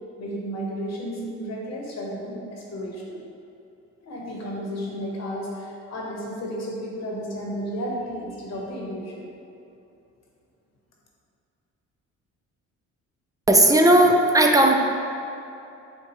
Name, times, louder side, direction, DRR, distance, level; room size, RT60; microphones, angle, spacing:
voice 1, 0.2-3.2 4.0-9.3, equal, 60° left, -3 dB, 1.0 m, -33 dB
voice 2, 13.5-14.8, right 1 dB, 10° right, 2 dB, 0.4 m, -16 dB
7.1 x 2.4 x 2.9 m, 2.7 s
cardioid pair, 90°, 30 cm